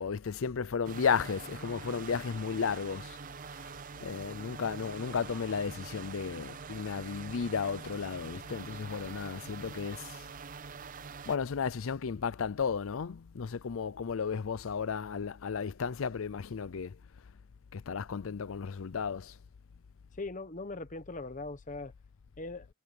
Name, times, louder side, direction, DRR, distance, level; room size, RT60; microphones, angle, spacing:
voice 1, 0.0-3.2 3.6-3.7 4.0-10.3 11.3-17.0 17.7-19.4, left 6 dB, 65° left, 0.5 m, -34 dB
sound 1, 0.8-11.4, right 5 dB, 40° right, 0.5 m, -45 dB
voice 2, 20.2-21.9 22.4-22.7, left 3 dB, 35° left, 1.2 m, -40 dB
head